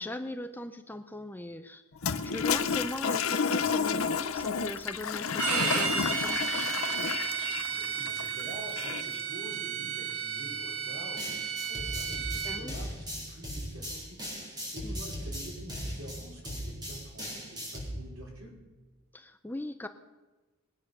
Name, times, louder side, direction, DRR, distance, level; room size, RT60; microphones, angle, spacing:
voice 1, 0.0-1.8 2.2-6.4 12.4-12.7 14.8-15.0 19.1-19.9, left 1 dB, 10° left, 9 dB, 0.5 m, -39 dB
Toilet flush, 2.0-9.2, left 6 dB, 70° left, 0.7 m, -31 dB
Bowed string instrument, 5.4-12.6, right 6 dB, 85° right, 1.8 m, -33 dB
voice 2, 7.7-18.6, right 1 dB, 70° right, -2 dB, 4.9 m, -47 dB
sound 1, 11.2-17.9, equal, 20° right, 4.7 m, -38 dB
20.5 x 8.7 x 6.6 m, 1.2 s
head